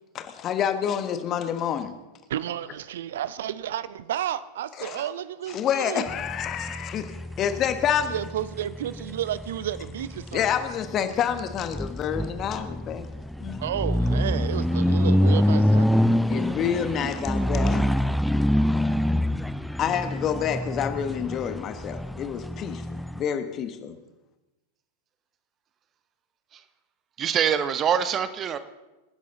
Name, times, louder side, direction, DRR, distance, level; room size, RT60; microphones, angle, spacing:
voice 1, 0.1-1.9 4.8-5.0 5.5-8.1 10.3-13.1 13.4-13.6 16.3-17.9 19.8-23.9, left 8 dB, 30° left, 1.3 m, -28 dB
voice 2, 2.3-6.1 8.1-10.4 13.6-16.0, right 11 dB, 60° right, 0.5 m, -32 dB
sound 1, 6.1-23.2, equal, ahead, 0.4 m, -26 dB
voice 3, 27.2-28.6, right 8 dB, 30° right, 0.9 m, -24 dB
26.0 x 11.0 x 4.0 m
figure-of-eight pair, 90°, 0 cm